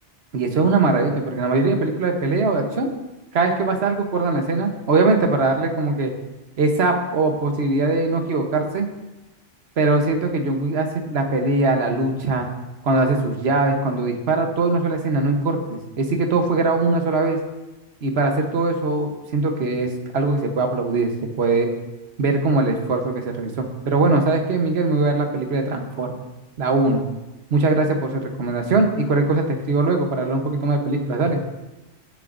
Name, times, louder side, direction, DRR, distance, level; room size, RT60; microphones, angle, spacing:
voice 1, 0.3-2.9 3.3-6.1 6.6-8.9 9.8-12.5 12.8-17.4 18.0-21.7 22.2-26.2 26.6-27.0 27.5-31.4, right 3 dB, 65° right, 4 dB, 1.4 m, -21 dB
17.0 x 7.0 x 2.6 m, 1.0 s
omnidirectional pair, 1.2 m